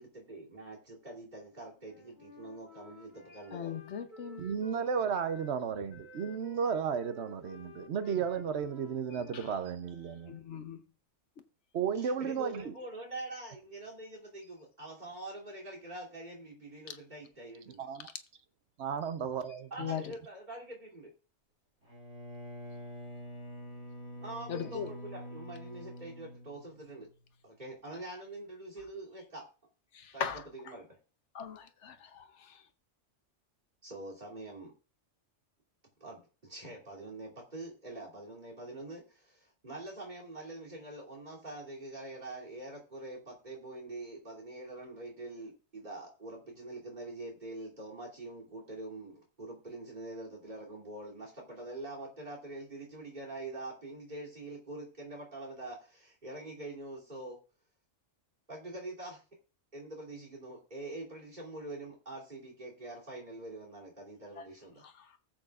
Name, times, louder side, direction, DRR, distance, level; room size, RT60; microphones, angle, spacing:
voice 1, 0.0-3.8 8.1-8.2 12.0-17.9 19.7-21.1 24.2-27.1 27.4-29.4 30.1-30.2 30.5-30.9 33.8-34.7 36.0-57.4 58.5-59.2 59.7-64.9, right 2 dB, 40° right, 3.1 m, -45 dB
Wind instrument woodwind instrument, 1.8-5.6 5.9-10.4, left 1 dB, 40° left, 2.1 m, -54 dB
voice 2, 3.5-4.4 9.1-9.5 10.3-10.8 19.8-20.1 24.5-24.9 29.9-30.4 31.3-32.6 64.4-64.5 64.8-65.2, left 7 dB, 75° left, 1.2 m, -39 dB
voice 3, 4.4-10.4 11.7-12.7 17.8-18.1 18.8-19.7, right 6 dB, 70° right, 1.0 m, -33 dB
Bowed string instrument, 21.8-27.2, equal, 85° right, 2.9 m, -46 dB
19.5 x 7.7 x 2.4 m
omnidirectional pair, 1.2 m